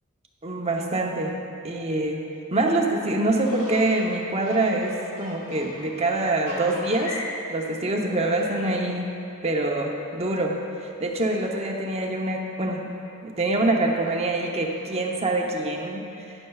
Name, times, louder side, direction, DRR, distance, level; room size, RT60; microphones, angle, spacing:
voice 1, 0.4-1.3 1.6-2.2 2.5-7.2 7.5-9.1 9.4-12.8 13.2-16.3, right 2 dB, 30° right, 0 dB, 0.8 m, -25 dB
sound 1, 3.3-7.3 7.6-9.0 9.3-9.4 10.7-10.8 11.0-11.1 11.5-11.6 12.0-12.3 12.7-13.2 14.0-15.0, left 2 dB, 85° left, 2.2 m, -42 dB
12.0 x 9.8 x 2.4 m, 2.6 s
head